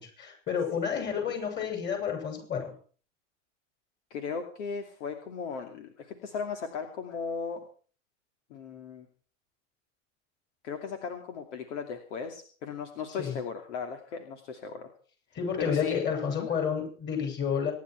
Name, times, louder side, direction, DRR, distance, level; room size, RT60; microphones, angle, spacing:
voice 1, 0.0-2.7 13.2-13.4 15.3-17.7, left 7 dB, 25° left, 4 dB, 6.6 m, -30 dB
voice 2, 4.1-7.6 8.5-9.1 10.6-14.9 15.6-16.0 16.3-16.5, left 5 dB, 65° left, 5 dB, 2.7 m, -37 dB
25.0 x 11.0 x 4.6 m, 0.41 s
hypercardioid pair, 125°, 38 cm